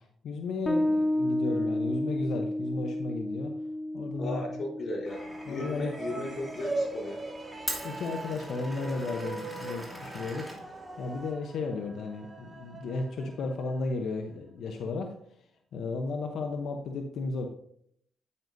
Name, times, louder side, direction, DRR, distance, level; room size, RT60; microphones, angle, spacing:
voice 1, 0.0-3.5 3.9-4.4 5.5-5.9 7.6-10.7 11.0-15.1 15.7-17.5, left 3 dB, 70° left, 4 dB, 0.9 m, -34 dB
Bass guitar, 0.7-7.8, left 1 dB, 20° left, 1.2 m, -32 dB
voice 2, 1.4-1.8 4.2-7.2, left 1 dB, 55° left, 0 dB, 4.0 m, -36 dB
Glass, 5.1-11.3, equal, ahead, 2.8 m, -43 dB
sound 1, 5.5-14.0, right 2 dB, 30° right, 1.0 m, -40 dB
9.6 x 9.2 x 2.7 m, 0.68 s
cardioid pair, 75°, 0 cm